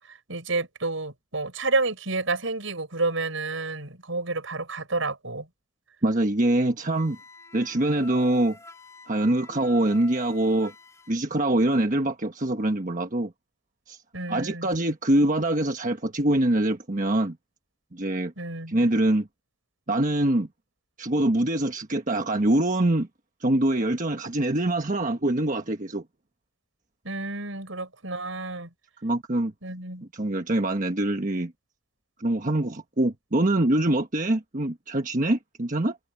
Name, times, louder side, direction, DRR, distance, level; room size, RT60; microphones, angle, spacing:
voice 1, 0.1-5.5 14.1-14.7 18.4-18.8 27.0-28.7 29.6-30.0, right 3 dB, 75° right, 6.2 m, -30 dB
voice 2, 6.0-7.2 7.5-8.6 9.1-10.7 11.1-13.3 13.9-14.0 14.3-17.4 17.9-18.3 18.7-19.3 19.9-20.5 21.0-23.1 23.4-26.0 29.0-29.5 30.1-31.5 32.2-36.0, right 1 dB, 40° right, 1.3 m, -24 dB
Wind instrument woodwind instrument, 6.9-11.1, left 2 dB, 15° left, 5.5 m, -48 dB
open air
head